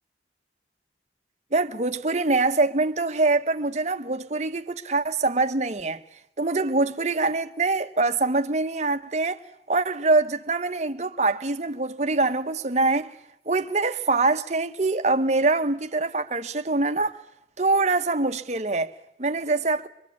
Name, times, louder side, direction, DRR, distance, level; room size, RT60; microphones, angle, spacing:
voice 1, 1.5-6.0 6.4-9.4 9.7-13.1 13.5-17.2 17.6-19.9, right 3 dB, 40° right, 1.0 m, -24 dB
23.5 x 23.0 x 8.4 m
head